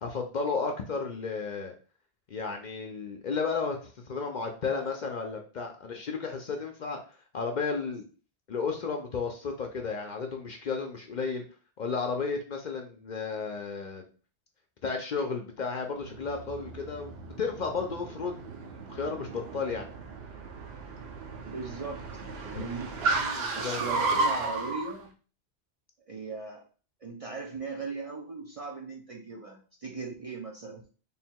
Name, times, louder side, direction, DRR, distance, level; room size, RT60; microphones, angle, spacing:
voice 1, 0.0-1.7 2.3-7.0 7.3-8.0 8.5-11.4 11.8-14.1 14.8-17.1 17.4-18.4 18.9-19.9 22.5-22.6 23.2-23.8 24.1-24.3, left 4 dB, 55° left, 3 dB, 0.6 m, -33 dB
Car, 16.0-24.9, right 3 dB, 70° right, 0.9 m, -34 dB
voice 2, 21.4-22.9 23.5-25.1 26.1-26.6 27.0-30.8, right 4 dB, 45° right, 0 dB, 0.5 m, -38 dB
3.4 x 2.2 x 4.4 m, 0.38 s
omnidirectional pair, 1.1 m